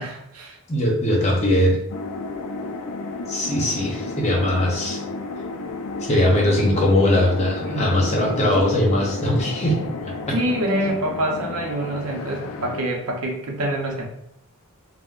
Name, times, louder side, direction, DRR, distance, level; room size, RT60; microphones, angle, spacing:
voice 1, 0.0-0.6 7.6-8.5 10.3-14.1, right 1 dB, 80° right, 0 dB, 0.7 m, -26 dB
voice 2, 0.7-1.8 3.3-5.0 6.0-9.8, left 1 dB, 30° left, -2 dB, 0.7 m, -20 dB
sound 1, 1.9-12.8, left 3 dB, 70° left, 0.3 m, -32 dB
3.6 x 2.1 x 2.4 m, 0.78 s
head